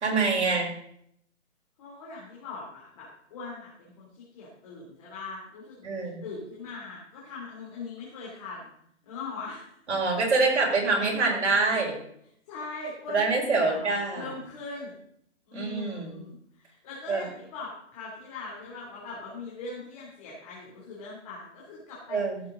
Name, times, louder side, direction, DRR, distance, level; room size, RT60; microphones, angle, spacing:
voice 1, 0.0-0.7 5.8-6.2 9.9-12.0 13.1-14.3 15.5-16.2 17.1-17.2 22.1-22.4, right 3 dB, 65° right, -2 dB, 4.5 m, -25 dB
voice 2, 1.8-4.1 4.3-8.7 9.0-9.7 12.5-15.0 15.5-22.2, left 3 dB, 30° left, -5 dB, 2.9 m, -41 dB
14.5 x 7.2 x 3.8 m, 0.71 s
hypercardioid pair, 165°, 36 cm